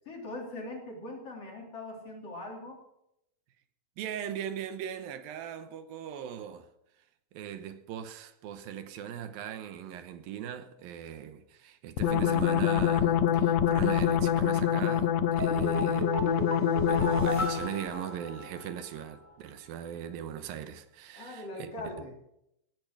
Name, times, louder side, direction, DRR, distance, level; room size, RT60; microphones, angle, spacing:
voice 1, 0.1-2.8 21.1-22.1, left 2 dB, 45° left, 4.2 m, -41 dB
voice 2, 4.0-6.7 7.3-16.1 16.9-21.7, right 9 dB, 85° right, 2.8 m, -39 dB
sound 1, 12.0-17.7, left 9 dB, 85° left, 1.5 m, -26 dB
sound 2, 15.4-18.8 19.1-19.2, equal, 5° right, 3.1 m, -34 dB
18.0 x 10.5 x 6.2 m
omnidirectional pair, 4.1 m